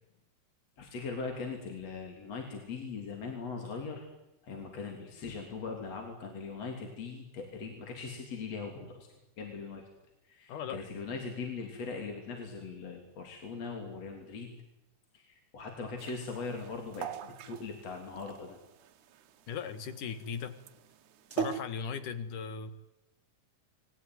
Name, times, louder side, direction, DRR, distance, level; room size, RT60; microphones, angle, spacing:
voice 1, 0.8-4.1 4.4-9.1 9.4-9.8 10.2-14.5 15.1-18.6, left 4 dB, 50° left, 2 dB, 4.3 m, -40 dB
voice 2, 10.5-10.9 19.5-20.5 21.3-22.7, left 6 dB, 75° left, 11 dB, 3.3 m, -38 dB
sound 1, 16.0-21.6, right 8 dB, 70° right, 2.5 m, -40 dB
29.0 x 21.0 x 9.5 m, 0.92 s
omnidirectional pair, 3.7 m